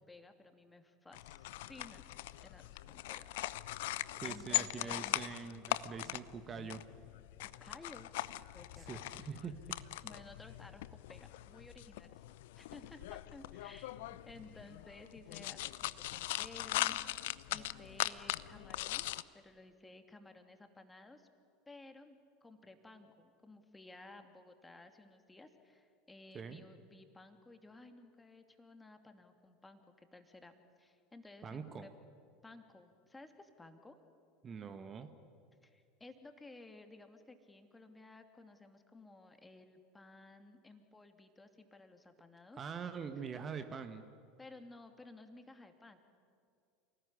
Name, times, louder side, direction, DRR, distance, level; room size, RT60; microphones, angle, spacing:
voice 1, 0.0-2.0 2.4-3.3 4.2-5.4 7.4-8.1 8.5-9.2 10.0-12.2 12.6-19.1 19.3-21.3 21.7-31.9 32.4-34.0 35.6-42.6 44.4-46.0, left 2 dB, 10° left, 7 dB, 2.7 m, -56 dB
sound 1, 1.1-19.2, left 16 dB, 65° left, 0.7 m, -41 dB
voice 2, 4.2-6.9 8.8-9.5 26.3-26.6 31.4-31.9 34.4-35.1 42.5-44.0, right 6 dB, 30° right, 8 dB, 1.6 m, -44 dB
28.5 x 19.0 x 9.9 m, 2.3 s
figure-of-eight pair, 75°, 0 cm